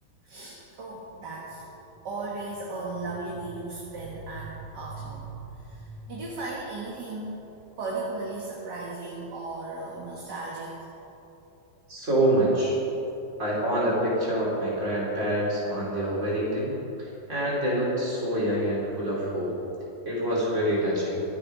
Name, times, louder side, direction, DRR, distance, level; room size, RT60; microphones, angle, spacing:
voice 1, 0.2-1.6 2.0-7.4 7.8-10.9, right 3 dB, 60° right, -3 dB, 2.2 m, -36 dB
voice 2, 11.9-12.8 13.4-16.7 17.0-19.6 20.0-21.2, right 1 dB, 35° right, -6 dB, 4.8 m, -26 dB
24.5 x 8.8 x 5.2 m, 3.0 s
omnidirectional pair, 2.1 m